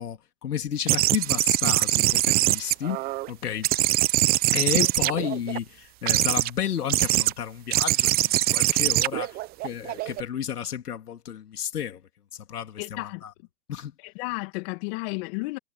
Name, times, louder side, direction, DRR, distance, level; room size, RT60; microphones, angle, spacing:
voice 1, 0.0-3.0 3.3-3.7 4.5-9.4 9.6-12.0 12.3-13.3 13.7-13.9, left 9 dB, 70° left, 3.3 m, -32 dB
sound 1, 0.9-3.3 3.6-5.6 6.1-6.5 6.9-7.3 7.7-10.2, right 17 dB, 20° right, 0.9 m, -23 dB
voice 2, 12.8-13.2 14.0-15.6, left 28 dB, 40° left, 2.7 m, -32 dB
hypercardioid pair, 130°, 47 cm